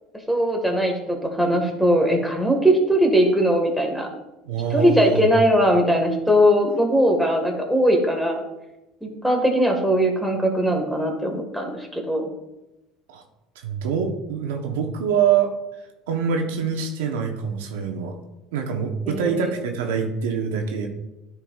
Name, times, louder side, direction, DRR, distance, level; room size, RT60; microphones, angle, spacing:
voice 1, 0.3-4.1 4.7-8.4 9.0-12.3 19.0-19.5, equal, ahead, 2 dB, 1.6 m, -20 dB
voice 2, 4.5-5.3 13.1-13.2 13.6-15.5 16.1-18.2 18.5-20.9, right 7 dB, 90° right, 3 dB, 0.9 m, -25 dB
10.5 x 4.6 x 2.4 m, 0.96 s
supercardioid pair, 95°, 0 cm